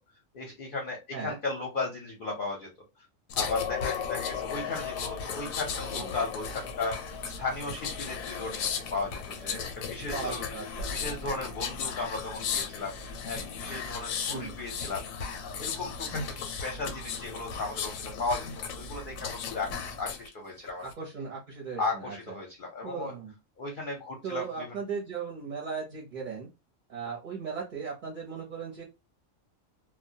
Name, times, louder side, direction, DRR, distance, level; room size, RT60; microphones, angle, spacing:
voice 1, 0.3-2.7 3.3-10.5 10.9-15.0 15.4-20.8 21.8-23.1 23.6-24.8, left 3 dB, 50° left, 0 dB, 0.7 m, -36 dB
sound 1, 3.3-20.3 20.7-20.9, left 6 dB, 85° left, 1.0 m, -35 dB
voice 2, 10.1-10.9 14.3-14.5 20.8-22.2 22.8-23.3 24.2-26.5 26.9-28.8, right 6 dB, 45° right, -2 dB, 0.7 m, -37 dB
2.2 x 2.1 x 2.6 m, 0.25 s
omnidirectional pair, 1.4 m